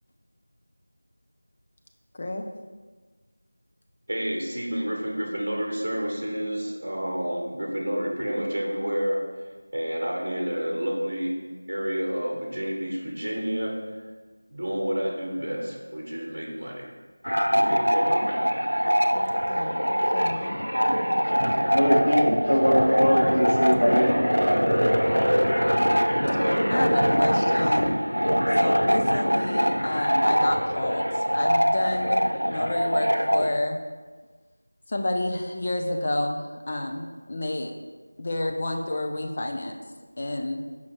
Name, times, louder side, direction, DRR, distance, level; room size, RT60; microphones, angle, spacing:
voice 1, 4.1-11.4 11.7-13.8 14.5-16.9 17.5-18.6, equal, 45° right, 0 dB, 1.0 m, -29 dB
sound 1, 17.2-33.6, equal, 90° right, 0.4 m, -23 dB
voice 2, 19.1-20.6 21.2-21.6 22.4-22.6 26.7-28.0 28.6-33.8 34.9-37.7 38.2-39.7 40.2-40.6, left 1 dB, 30° left, 3 dB, 0.4 m, -30 dB
voice 3, 21.3-24.1, equal, 75° left, -4 dB, 1.8 m, -23 dB
6.1 x 5.4 x 3.1 m, 1.4 s
figure-of-eight pair, 170°, 0 cm